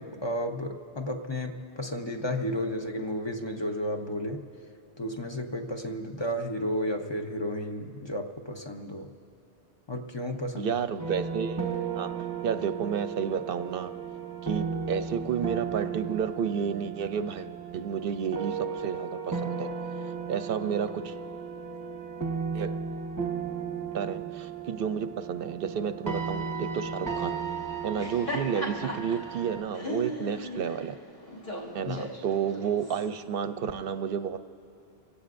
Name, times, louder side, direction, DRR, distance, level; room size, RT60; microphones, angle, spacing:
voice 1, 0.0-4.5 5.0-9.1 9.9-10.8 31.8-32.0, equal, 30° left, 3 dB, 0.7 m, -32 dB
voice 2, 10.6-11.6 12.0-12.1 12.4-13.9 14.4-19.7 20.3-21.1 22.5-22.7 23.9-27.4 27.8-30.9 31.7-34.4, right 7 dB, 65° right, 10 dB, 0.8 m, -31 dB
sound 1, 11.0-29.6, right 6 dB, 20° right, 0.9 m, -35 dB
Laughter, 27.8-33.1, left 1 dB, 45° left, 2.7 m, -38 dB
28.0 x 17.0 x 2.6 m, 2.9 s
omnidirectional pair, 1.1 m